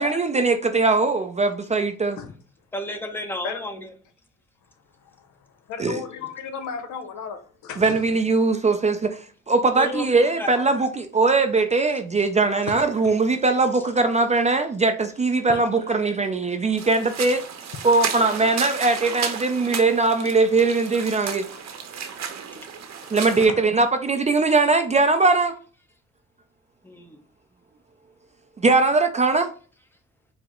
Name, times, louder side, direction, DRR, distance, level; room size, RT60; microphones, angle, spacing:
voice 1, 0.0-2.2 5.8-6.0 7.8-9.2 9.5-17.4 17.8-21.5 23.1-25.5 28.6-29.5, right 3 dB, 25° right, 0.3 m, -20 dB
voice 2, 2.7-4.0 9.7-10.6 13.7-13.9 26.8-27.2, left 1 dB, 5° left, 0.7 m, -32 dB
voice 3, 5.7-8.0 12.7-12.8 15.5-15.6 22.5-22.7 23.0-23.2 23.5-23.6, left 6 dB, 70° left, 0.7 m, -34 dB
sound 1, 16.8-23.5, right 7 dB, 60° right, 0.7 m, -33 dB
4.6 x 2.0 x 3.7 m
cardioid pair, 90°, 30 cm